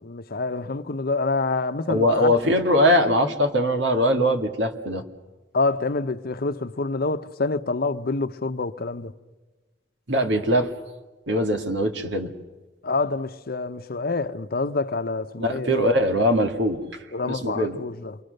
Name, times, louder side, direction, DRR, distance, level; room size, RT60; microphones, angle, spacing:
voice 1, 0.0-2.4 5.5-9.1 12.8-15.8 17.1-18.2, left 3 dB, 55° left, 0.9 m, -27 dB
voice 2, 1.9-5.0 10.1-10.7 11.3-12.3 15.4-16.8 17.3-17.8, equal, 70° right, 2.2 m, -21 dB
28.0 x 23.0 x 6.6 m
head